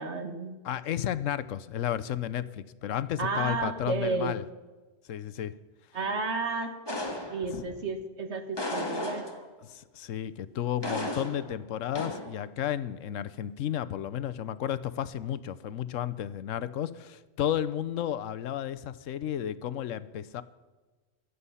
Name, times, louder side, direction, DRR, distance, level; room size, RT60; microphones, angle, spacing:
voice 1, 0.0-0.6 3.2-4.3 5.9-6.7 7.3-9.3, right 3 dB, 65° right, 7 dB, 1.7 m, -32 dB
voice 2, 0.6-4.4 5.1-5.5 9.6-20.4, left 10 dB, 85° left, 14 dB, 1.1 m, -33 dB
sound 1, 6.9-7.8 8.6-9.6 10.8-11.6 12.0-12.3, left 1 dB, 20° left, 1.7 m, -34 dB
24.0 x 8.4 x 5.6 m, 1.3 s
omnidirectional pair, 1.3 m